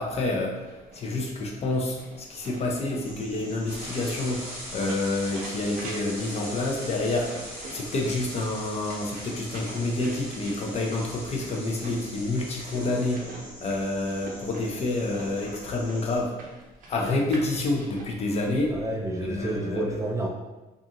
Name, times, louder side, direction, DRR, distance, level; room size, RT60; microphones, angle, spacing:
voice 1, 0.0-16.3 16.9-18.7 19.2-20.0, left 2 dB, 40° left, 0 dB, 0.5 m, -28 dB
sound 1, 0.6-18.1, right 2 dB, 55° right, 0.6 m, -46 dB
sound 2, 3.0-16.2, equal, 60° left, 1.2 m, -47 dB
sound 3, 3.7-13.1, equal, 85° left, 1.4 m, -41 dB
voice 2, 18.7-20.3, right 2 dB, 20° right, -1 dB, 0.3 m, -30 dB
2.5 x 2.3 x 2.8 m, 1.1 s
cardioid pair, 110°, 17 cm